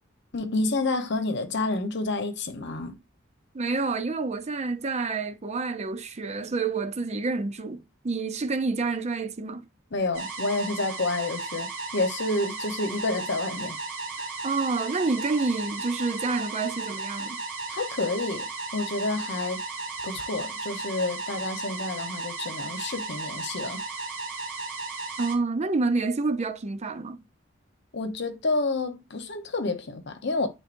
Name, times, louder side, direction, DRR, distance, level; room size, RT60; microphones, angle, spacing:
voice 1, 0.3-3.0 9.9-13.8 14.2-14.3 17.7-19.6 20.0-23.8 27.9-30.5, left 2 dB, 60° left, 0.9 m, -29 dB
voice 2, 3.5-9.6 14.4-17.4 25.2-27.2, right 3 dB, 35° right, 0.5 m, -28 dB
sound 1, 10.1-25.4, right 3 dB, 60° right, 2.2 m, -35 dB
9.7 x 3.8 x 2.5 m
head